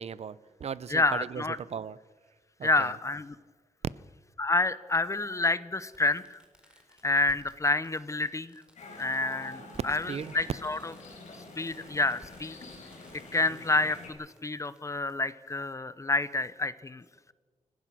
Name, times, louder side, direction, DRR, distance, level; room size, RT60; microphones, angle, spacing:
voice 1, 0.0-2.0 2.6-2.9 10.1-10.3, right 7 dB, 50° right, 19 dB, 0.6 m, -38 dB
voice 2, 0.9-1.6 2.6-3.4 4.4-6.4 7.0-8.5 9.0-10.9 11.6-12.6 13.3-17.0, left 2 dB, 20° left, 15 dB, 0.8 m, -28 dB
Fireworks, 1.6-1.7 3.2-3.3 4.9-5.0 5.5-5.6 5.9-14.8 15.1-15.2, right 1 dB, 5° right, 4.0 m, -58 dB
sound 1, 8.8-14.1, left 2 dB, 60° left, 5.3 m, -47 dB
29.0 x 16.0 x 6.1 m, 1.4 s
wide cardioid pair, 140°, 14 cm